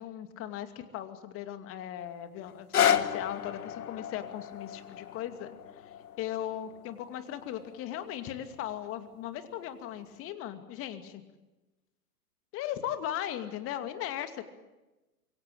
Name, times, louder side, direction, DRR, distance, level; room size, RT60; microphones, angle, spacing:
voice 1, 0.0-5.5 5.8-11.2 12.5-14.4, left 11 dB, 30° left, 9 dB, 2.5 m, -38 dB
sound 1, 2.5-8.6 9.2-9.3, left 9 dB, 70° left, 1.7 m, -32 dB
26.0 x 23.0 x 8.7 m, 1.1 s
hypercardioid pair, 115°, 46 cm